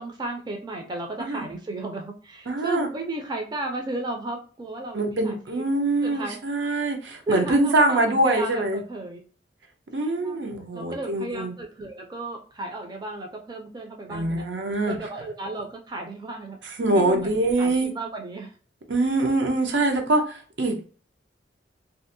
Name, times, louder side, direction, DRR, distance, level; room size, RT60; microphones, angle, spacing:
voice 1, 0.0-5.6 6.0-6.4 7.3-9.2 10.0-10.4 10.7-14.5 14.9-16.6 16.9-18.5, right 2 dB, 25° right, 2 dB, 0.4 m, -34 dB
voice 2, 1.2-1.6 2.5-2.9 4.9-8.8 9.9-11.6 14.1-15.0 16.6-17.9 18.9-20.9, right 2 dB, 75° right, 3 dB, 0.6 m, -24 dB
2.6 x 2.0 x 2.6 m, 0.38 s
head